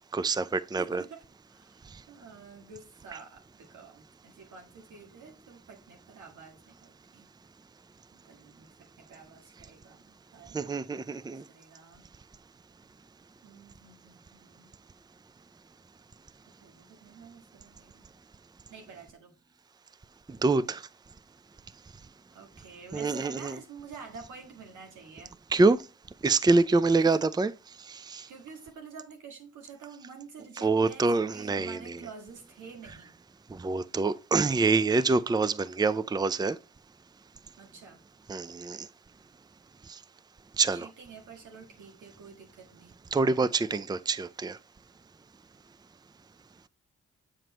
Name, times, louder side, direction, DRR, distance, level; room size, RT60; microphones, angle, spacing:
voice 1, 0.1-1.0 10.5-11.4 20.4-20.8 22.9-23.6 25.5-25.8 26.2-27.5 27.9-28.3 30.6-32.0 33.5-36.6 38.3-38.9 39.9-40.0 40.6-40.9 43.1-44.6, right 3 dB, 15° right, 0.5 m, -26 dB
voice 2, 0.8-1.8 2.1-7.3 8.1-12.1 13.4-14.8 16.6-18.1 18.7-19.3 22.3-25.3 27.0-27.3 28.3-33.1 37.6-38.0 40.7-42.9, right 5 dB, 85° right, 1.7 m, -49 dB
7.4 x 6.4 x 3.0 m
supercardioid pair, 45°, 30 cm